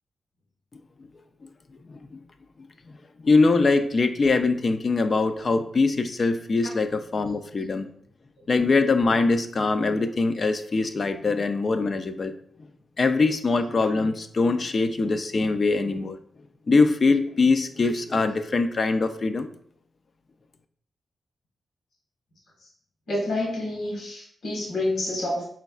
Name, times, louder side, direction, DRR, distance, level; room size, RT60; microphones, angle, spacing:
voice 1, 1.9-2.2 3.2-7.9 8.5-12.3 13.0-16.2 16.7-19.5, left 3 dB, 45° left, 9 dB, 0.3 m, -22 dB
voice 2, 23.1-25.4, left 1 dB, 75° left, -3 dB, 1.3 m, -28 dB
4.4 x 3.9 x 2.3 m, 0.65 s
cardioid pair, 90°, 0 cm